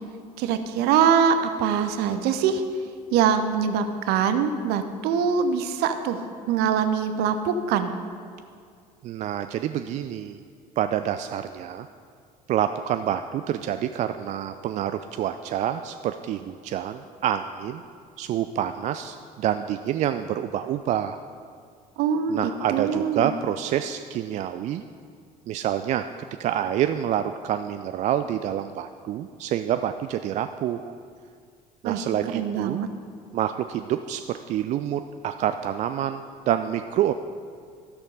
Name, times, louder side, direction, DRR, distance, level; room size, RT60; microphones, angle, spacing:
voice 1, 0.4-2.6 3.1-7.9 22.0-22.4 22.7-23.3 31.8-32.0 32.3-32.9, right 7 dB, 50° right, 9 dB, 0.8 m, -23 dB
voice 2, 9.0-10.4 10.8-11.9 12.5-17.8 18.2-21.2 22.3-24.8 25.5-26.1 26.4-30.9 31.8-32.8 33.3-37.1, right 10 dB, 35° right, 9 dB, 0.3 m, -27 dB
12.5 x 6.5 x 5.3 m, 2.2 s
figure-of-eight pair, 60°, 21 cm